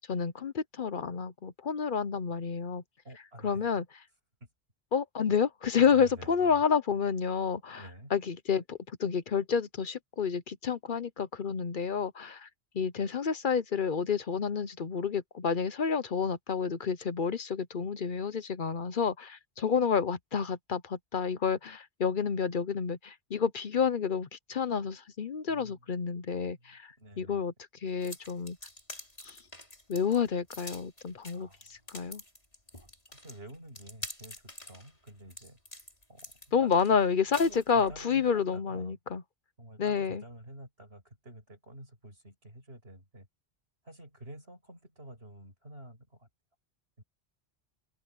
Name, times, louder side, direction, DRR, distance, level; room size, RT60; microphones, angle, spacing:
voice 1, 0.1-2.8 3.4-3.8 4.9-7.8 8.1-12.5 12.7-27.5 27.8-28.6 29.2-29.4 29.9-31.5 31.9-32.2 36.5-39.2 39.8-40.2, left 6 dB, 55° left, 0.9 m, -29 dB
voice 2, 3.0-3.8 4.4-4.5 5.9-6.6 7.8-8.1 25.5-25.9 26.2-27.4 31.3-31.6 32.7-35.6 36.1-36.3 36.6-36.8 37.4-39.0 39.6-43.3 43.8-46.3 47.0-47.1, right 1 dB, 75° right, 7.8 m, -50 dB
sound 1, 28.0-38.0, left 1 dB, 35° left, 6.1 m, -47 dB
open air
omnidirectional pair, 1.1 m